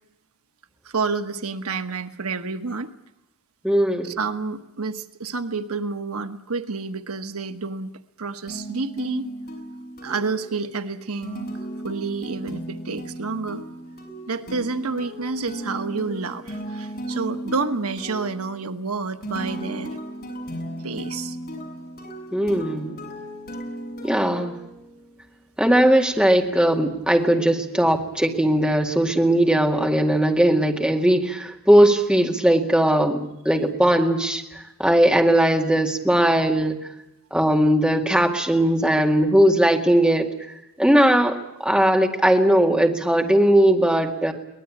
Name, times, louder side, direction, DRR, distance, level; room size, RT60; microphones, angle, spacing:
voice 1, 0.8-2.9 4.0-7.9 8.2-9.3 10.0-11.5 11.8-13.6 14.3-20.0 20.8-21.4, right 4 dB, 75° right, 9 dB, 1.2 m, -29 dB
voice 2, 3.6-4.1 22.3-23.0 24.0-24.6 25.6-36.8 37.3-40.3 40.8-44.3, right 1 dB, 5° right, 2 dB, 2.1 m, -19 dB
sound 1, 8.5-25.2, right 1 dB, 45° left, 6.8 m, -36 dB
23.0 x 19.0 x 8.7 m, 0.89 s
head